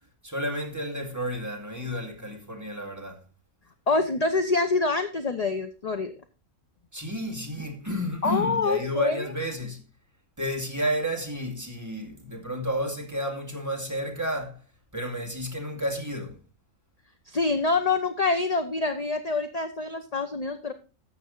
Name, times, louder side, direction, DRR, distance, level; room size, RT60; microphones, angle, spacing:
voice 1, 0.2-3.2 6.9-9.8 10.4-14.6 14.9-16.4, equal, 15° right, 2.1 m, -31 dB
voice 2, 3.9-6.1 8.2-9.2 17.3-20.7, left 3 dB, 35° left, 0.8 m, -26 dB
13.0 x 7.6 x 3.8 m
omnidirectional pair, 1.4 m